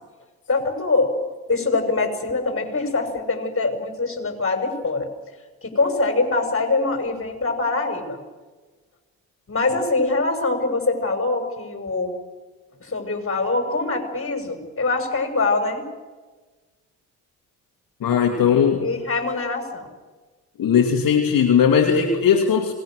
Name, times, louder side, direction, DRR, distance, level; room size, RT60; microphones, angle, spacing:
voice 1, 0.5-5.1 5.6-8.2 9.5-12.1 12.8-15.9 18.3-19.9, left 3 dB, 35° left, 5 dB, 6.2 m, -24 dB
voice 2, 18.0-18.9 20.6-22.7, left 7 dB, 60° left, 2 dB, 2.5 m, -18 dB
27.0 x 20.5 x 6.5 m, 1.3 s
supercardioid pair, 65°, 40 cm